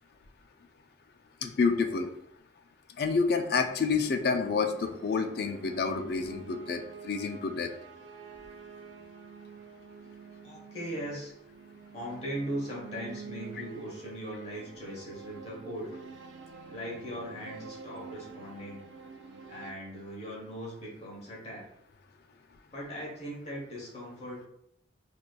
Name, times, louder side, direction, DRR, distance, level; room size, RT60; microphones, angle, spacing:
voice 1, 1.4-2.1 3.0-7.7, left 4 dB, 55° left, 6 dB, 0.4 m, -28 dB
sound 1, 3.1-19.7, right 5 dB, 80° right, 0.4 m, -48 dB
voice 2, 10.4-11.3 11.9-16.0 16.7-18.8 19.5-21.7 22.7-24.4, equal, 35° left, -3 dB, 1.1 m, -39 dB
4.6 x 2.5 x 2.2 m, 0.74 s
head